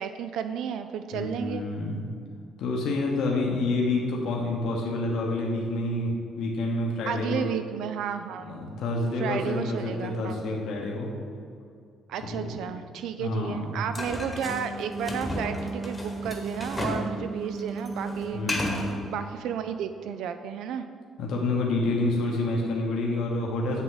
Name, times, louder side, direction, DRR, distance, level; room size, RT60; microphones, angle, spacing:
voice 1, 0.0-1.7 7.1-8.6 9.2-10.4 12.1-18.4 19.1-20.9, right 8 dB, 70° right, 9 dB, 0.3 m, -32 dB
voice 2, 1.1-2.0 2.6-7.5 8.4-11.1 12.2-12.6 13.2-13.8 18.3-18.9 21.2-23.8, left 2 dB, 70° left, -1 dB, 1.1 m, -28 dB
sound 1, 13.9-17.1 17.4-18.9, left 1 dB, 10° left, 1.1 m, -33 dB
Wind instrument woodwind instrument, 14.3-19.0, right 3 dB, 25° right, 1.2 m, -36 dB
8.1 x 7.1 x 3.9 m, 2.3 s
cardioid pair, 175°, 0 cm